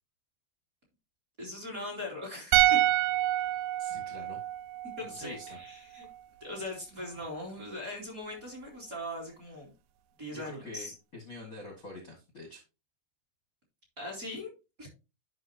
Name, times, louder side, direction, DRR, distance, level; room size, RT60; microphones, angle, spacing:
voice 1, 1.4-2.8 5.0-6.1 6.4-9.7 10.2-10.9 14.0-14.5 14.8-14.9, left 1 dB, 25° right, -2 dB, 2.8 m, -40 dB
sound 1, 2.5-5.7 6.0-6.2, right 14 dB, 80° right, 2.3 m, -27 dB
voice 2, 3.4-4.4 5.0-5.6 7.1-7.3 10.3-12.6, left 2 dB, 30° left, 0 dB, 1.7 m, -46 dB
11.0 x 5.6 x 2.9 m, 0.28 s
omnidirectional pair, 4.2 m